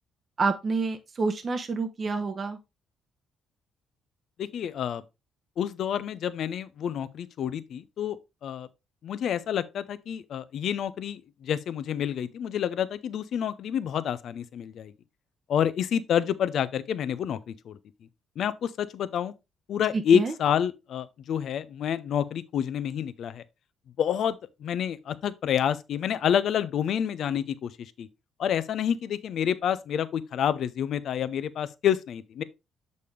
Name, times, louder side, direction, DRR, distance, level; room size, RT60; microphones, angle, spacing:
voice 1, 0.4-2.6 19.9-20.3, right 4 dB, 40° right, 0.9 m, -28 dB
voice 2, 4.4-5.0 5.6-8.2 8.4-8.7 9.0-14.9 15.5-17.8 18.4-19.3 19.7-23.4 24.0-28.1 28.4-32.4, left 9 dB, 65° left, 0.6 m, -28 dB
6.8 x 5.3 x 3.2 m
supercardioid pair, 60°, 0 cm